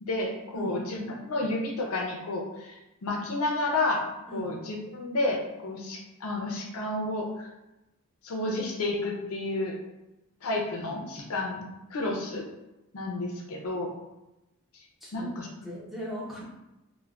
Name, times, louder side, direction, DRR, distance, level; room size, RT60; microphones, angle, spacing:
voice 1, 0.0-4.0 4.3-7.5 8.2-9.8 10.4-11.6 11.9-12.4 12.9-13.9 15.1-15.5, left 2 dB, 75° left, 1 dB, 0.5 m, -31 dB
voice 2, 15.6-16.4, right 1 dB, ahead, -7 dB, 0.5 m, -38 dB
3.2 x 2.1 x 2.3 m, 0.97 s
head